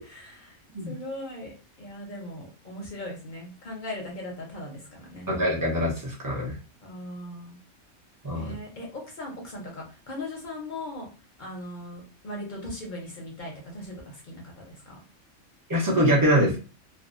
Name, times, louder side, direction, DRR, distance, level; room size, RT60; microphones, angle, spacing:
voice 1, 0.0-0.6 0.9-1.5 1.8-5.3 6.8-7.6 8.3-11.1 11.4-15.0, left 1 dB, 50° left, -1 dB, 0.6 m, -39 dB
voice 2, 5.3-6.6 8.2-8.5 15.7-16.6, equal, 30° right, -4 dB, 0.4 m, -23 dB
2.6 x 2.1 x 2.5 m, 0.34 s
omnidirectional pair, 1.5 m